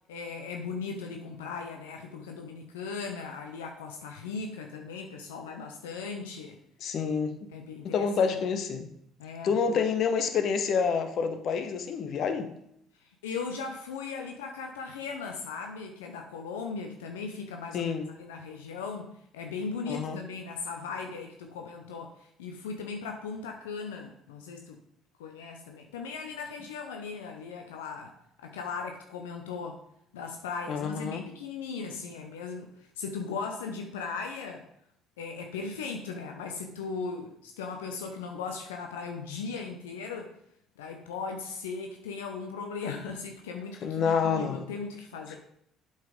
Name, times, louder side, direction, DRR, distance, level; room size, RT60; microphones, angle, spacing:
voice 1, 0.1-6.6 7.5-8.4 9.2-9.8 12.9-24.8 25.2-29.8 30.1-34.7 35.2-40.3 40.8-45.4, left 5 dB, 85° left, 3 dB, 0.7 m, -38 dB
voice 2, 6.8-7.3 7.8-8.9 9.4-12.5 17.7-18.1 19.9-20.2 30.7-31.2 43.8-44.7, left 6 dB, 60° left, 8 dB, 1.1 m, -28 dB
7.8 x 5.7 x 5.0 m, 0.73 s
hypercardioid pair, 60°, 0 cm